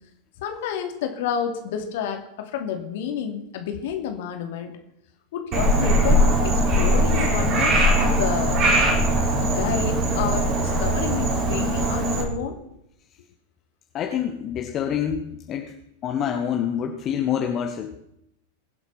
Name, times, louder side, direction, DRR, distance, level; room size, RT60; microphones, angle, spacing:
voice 1, 0.4-4.7 5.3-8.6 9.4-12.6, left 8 dB, 55° left, 5 dB, 2.6 m, -30 dB
Frog, 5.5-12.2, right 1 dB, 35° right, 4.8 m, -20 dB
voice 2, 13.9-15.7 16.0-18.0, left 9 dB, 30° left, 3 dB, 1.5 m, -26 dB
23.0 x 8.0 x 5.7 m, 0.76 s
figure-of-eight pair, 90°, 0 cm